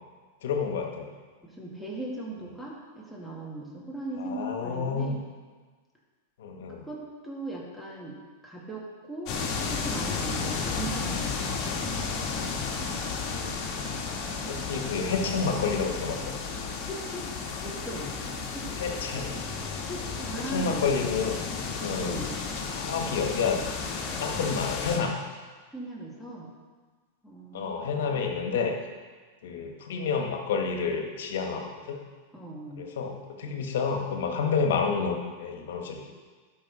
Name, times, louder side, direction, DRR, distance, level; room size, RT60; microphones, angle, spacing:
voice 1, 0.4-1.1 4.2-5.1 6.4-6.9 13.2-13.8 14.5-16.4 18.8-19.3 20.4-21.5 21.8-22.3 22.7-23.6 24.2-25.1 27.5-28.7 29.4-32.0 32.8-36.2, left 5 dB, 70° left, 3 dB, 1.4 m, -29 dB
voice 2, 1.4-5.2 6.7-8.2 8.4-9.3 9.7-11.6 16.8-17.3 17.6-18.9 19.9-20.9 22.0-22.3 25.7-26.5 27.2-28.2 32.3-32.9, right 1 dB, ahead, -5 dB, 2.2 m, -39 dB
sound 1, 9.3-25.0, left 5 dB, 45° left, 1.8 m, -33 dB
sound 2, 17.5-22.1 23.3-25.1, right 1 dB, 20° left, 1.5 m, -51 dB
12.0 x 5.8 x 4.2 m, 1.4 s
hypercardioid pair, 110°, 0 cm